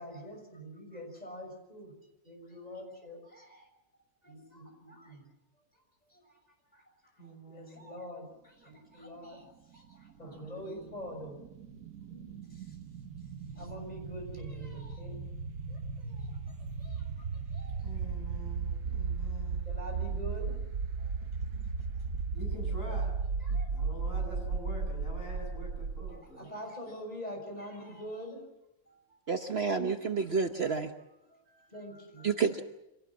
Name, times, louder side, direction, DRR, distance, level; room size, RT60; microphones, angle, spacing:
voice 1, 0.0-1.9 2.2-3.7 4.2-5.3 6.1-6.2 6.7-6.8 7.5-9.5 9.7-11.4 11.7-12.4 13.5-15.2 15.7-16.3 16.8-17.1 17.5-17.8 19.7-20.6 21.0-21.1 23.4-23.7 26.1-28.4 28.9-29.0 31.3-32.3, equal, 25° left, 2 dB, 6.5 m, -45 dB
voice 2, 7.2-7.9 10.2-10.9 13.5-13.8 17.8-19.6 22.3-23.1 23.7-26.5, equal, 60° left, 1 dB, 8.4 m, -46 dB
sound 1, 10.3-26.2, right 5 dB, 75° right, 1.7 m, -36 dB
voice 3, 29.3-30.9 32.2-32.6, right 5 dB, 45° right, 6 dB, 1.2 m, -29 dB
26.0 x 18.0 x 7.3 m, 0.92 s
omnidirectional pair, 1.6 m